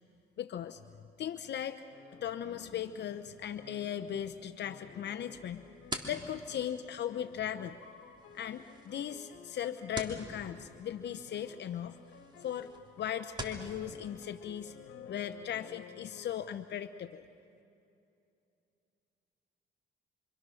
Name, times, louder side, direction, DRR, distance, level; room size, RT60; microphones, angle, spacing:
voice 1, 0.4-0.8 1.2-1.8 2.2-5.6 6.1-7.8 8.3-12.0 12.4-12.7 13.0-17.3, left 10 dB, 60° left, 8 dB, 0.8 m, -38 dB
sound 1, 1.8-3.1 3.6-4.3 4.6-16.5, left 7 dB, 85° left, 1.5 m, -55 dB
sound 2, 5.3-13.7, right 1 dB, 20° right, 2.9 m, -47 dB
26.5 x 26.0 x 6.4 m, 2.6 s
cardioid pair, 90°, 20 cm